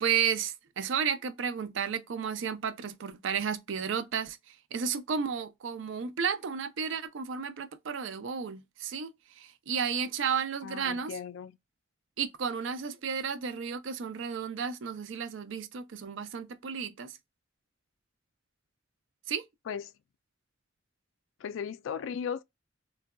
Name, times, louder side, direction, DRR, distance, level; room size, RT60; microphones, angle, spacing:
voice 1, 0.0-9.1 9.4-11.1 12.2-17.2 19.3-19.4, right 7 dB, 75° right, 0.5 m, -33 dB
voice 2, 10.6-11.6 19.7-19.9 21.4-22.4, left 7 dB, 80° left, 0.3 m, -36 dB
3.8 x 2.2 x 2.2 m
head